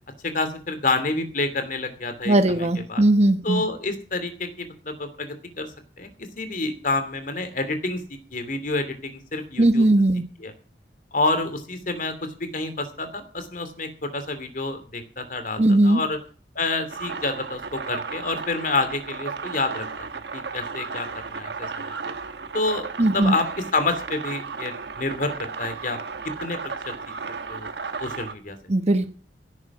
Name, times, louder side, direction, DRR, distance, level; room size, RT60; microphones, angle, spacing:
voice 1, 0.2-3.0 3.4-9.8 10.4-10.5 11.1-16.2 16.5-19.9 20.3-22.0 22.5-22.9 23.1-26.0 26.4-26.6 26.9-27.0 27.5-27.7 28.0-28.6, left 3 dB, 50° left, 9 dB, 2.7 m, -28 dB
voice 2, 2.2-3.6 9.6-10.3 15.6-16.0 23.0-23.4 28.7-29.1, right 1 dB, 40° right, 8 dB, 1.1 m, -19 dB
sound 1, 16.9-28.3, right 5 dB, 75° right, 1.3 m, -34 dB
17.5 x 9.5 x 6.1 m, 0.40 s
head